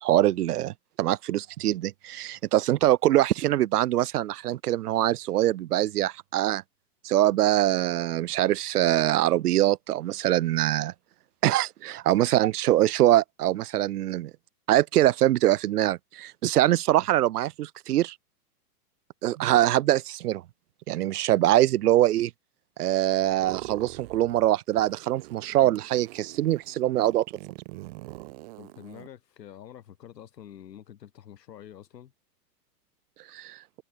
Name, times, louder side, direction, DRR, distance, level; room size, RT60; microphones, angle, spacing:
voice 1, 0.0-6.6 7.0-10.9 11.4-14.3 14.7-18.1 19.2-20.4 20.9-22.3 22.8-27.2 33.3-33.6, right 14 dB, 70° right, 0.9 m, -23 dB
sound 1, 23.2-24.5 24.7-29.1, right 21 dB, 35° right, 1.6 m, -43 dB
voice 2, 28.6-32.1, left 10 dB, 85° left, 4.4 m, -47 dB
supercardioid pair, 165°, 48 cm